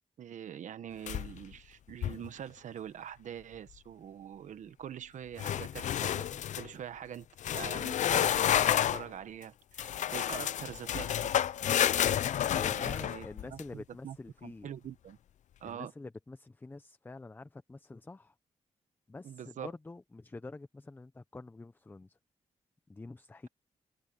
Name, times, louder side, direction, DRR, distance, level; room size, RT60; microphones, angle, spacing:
voice 1, 0.2-7.3 7.5-8.6 8.9-11.3 12.7-14.2 14.4-15.2 15.6-15.9 19.2-19.7, right 9 dB, 80° right, 1.1 m, -44 dB
sound 1, 1.1-1.5 1.9-2.3 5.4-6.7 7.4-9.1 9.8-13.6, left 10 dB, 75° left, 0.5 m, -30 dB
voice 2, 12.5-14.7 15.6-18.3 19.1-22.2 22.9-23.5, left 3 dB, 15° left, 0.7 m, -46 dB
wide cardioid pair, 140°, 13 cm